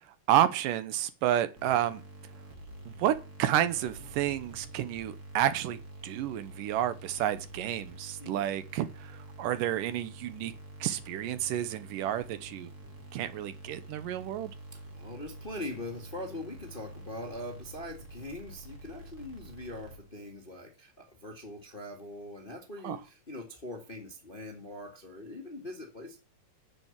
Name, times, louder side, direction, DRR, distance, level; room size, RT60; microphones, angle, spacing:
voice 1, 0.3-2.0 3.0-5.8 6.0-9.1 9.4-10.5 10.8-12.7 13.1-14.5 22.8-23.0, right 11 dB, 75° right, 2.4 m, -30 dB
sound 1, 1.6-20.3, right 1 dB, 30° right, 2.8 m, -48 dB
voice 2, 14.7-26.2, left 1 dB, 25° left, 1.2 m, -42 dB
9.7 x 7.3 x 7.3 m
omnidirectional pair, 4.0 m